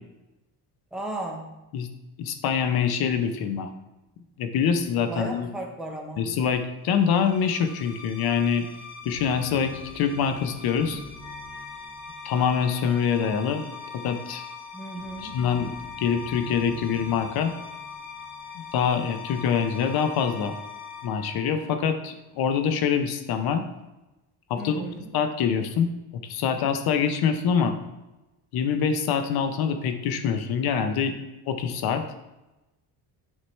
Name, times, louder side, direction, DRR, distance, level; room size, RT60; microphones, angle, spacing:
voice 1, 0.9-1.5 5.0-6.3 14.7-15.4 24.6-25.1, right 1 dB, ahead, -1 dB, 0.8 m, -35 dB
voice 2, 2.2-3.7 4.4-5.5 6.2-8.6 9.0-11.0 12.2-13.7 14.0-14.4 15.2-15.7 16.0-17.5 18.7-20.5 21.0-23.6 24.5-24.8 25.1-25.9 26.2-27.7 28.5-31.2 31.5-32.0, left 7 dB, 65° left, 8 dB, 0.7 m, -25 dB
sound 1, 6.9-21.0, left 2 dB, 40° left, 2.2 m, -44 dB
Wind instrument woodwind instrument, 11.1-21.9, left 8 dB, 15° left, 2.0 m, -43 dB
7.4 x 4.7 x 3.2 m, 1.0 s
cardioid pair, 165°, 41 cm